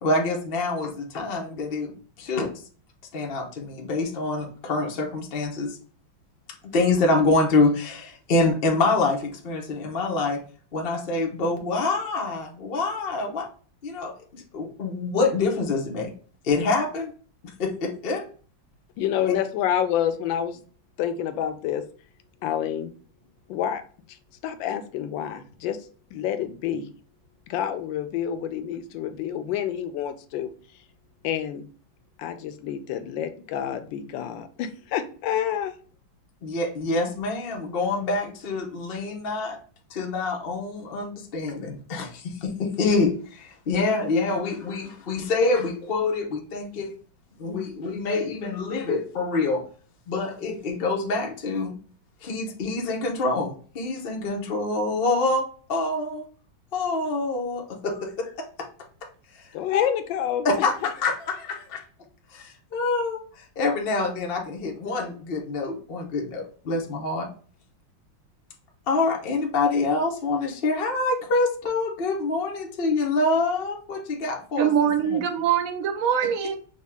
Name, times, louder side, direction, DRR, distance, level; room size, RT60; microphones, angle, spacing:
voice 1, 0.0-2.5 3.1-5.8 6.6-10.4 10.7-13.5 13.8-16.1 16.4-17.1 17.4-18.2 36.4-39.6 39.9-46.9 47.4-49.6 50.1-51.8 52.2-56.3 56.7-58.3 58.6-58.7 59.3-59.4 59.7-59.9 60.4-61.8 62.3-67.3 68.9-75.2, left 3 dB, 60° left, 0 dB, 0.5 m, -26 dB
voice 2, 19.0-20.6 21.0-21.8 22.4-22.9 23.5-23.8 24.4-25.8 26.1-26.9 27.5-30.5 31.2-31.6 32.2-35.8 59.5-60.7, left 10 dB, 80° left, 10 dB, 1.3 m, -28 dB
voice 3, 74.6-76.6, right 8 dB, 70° right, 6 dB, 0.8 m, -23 dB
5.3 x 2.2 x 3.5 m, 0.42 s
omnidirectional pair, 2.1 m